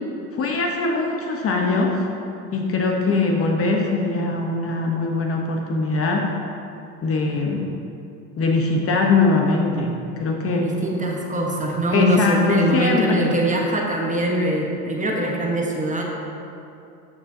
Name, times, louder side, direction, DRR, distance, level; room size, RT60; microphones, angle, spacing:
voice 1, 0.3-2.1 2.5-6.3 7.0-7.7 8.4-10.7 11.9-13.3, left 3 dB, 30° left, 1 dB, 1.0 m, -21 dB
voice 2, 10.5-16.0, right 1 dB, 15° right, -1 dB, 1.2 m, -23 dB
12.5 x 6.6 x 2.8 m, 2.7 s
hypercardioid pair, 95°, 46 cm